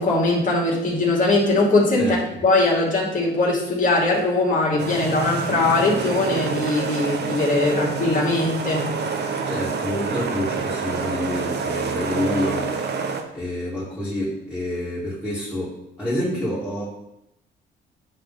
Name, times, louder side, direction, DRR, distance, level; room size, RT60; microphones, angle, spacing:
voice 1, 0.0-2.2 2.4-8.9, left 2 dB, 40° left, -2 dB, 2.5 m, -20 dB
voice 2, 2.0-2.4 9.4-12.7 13.0-16.8, left 1 dB, 10° left, -9 dB, 2.5 m, -28 dB
sound 1, 4.8-13.2, right 5 dB, 60° right, 0.9 m, -27 dB
9.7 x 3.3 x 4.2 m, 0.87 s
cardioid pair, 90°, 20 cm